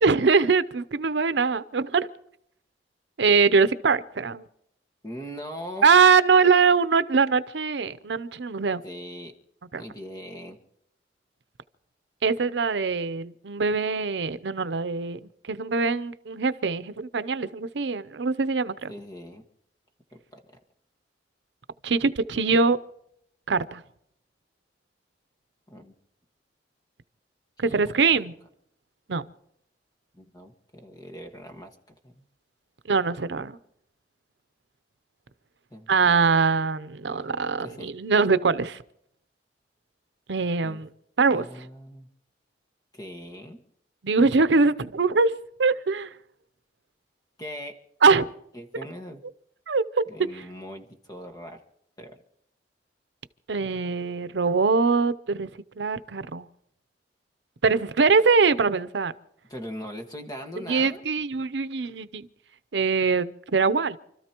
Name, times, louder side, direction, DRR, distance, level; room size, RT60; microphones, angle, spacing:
voice 1, 0.0-2.1 3.2-4.4 5.8-8.8 9.7-9.8 12.2-18.9 21.8-22.8 23.5-23.8 27.6-28.3 29.1-29.2 32.9-33.6 35.9-38.8 40.3-40.9 41.2-41.5 44.0-45.3 45.6-46.1 48.0-48.3 49.7-50.0 53.5-55.5 55.8-56.5 57.6-59.1 60.7-62.3 62.7-64.0, right 4 dB, 85° right, 0.7 m, -22 dB
voice 2, 5.0-5.9 8.8-9.3 9.7-10.6 18.9-19.4 20.1-20.4 25.7-25.9 27.6-27.8 28.1-28.3 30.1-31.8 32.0-32.2 35.7-36.3 37.0-37.3 37.6-37.9 40.6-40.8 41.3-42.1 42.9-43.6 47.4-47.7 48.5-49.2 50.1-51.6 52.0-52.2 59.5-61.0, equal, 20° left, 1.6 m, -40 dB
29.0 x 13.5 x 3.0 m
head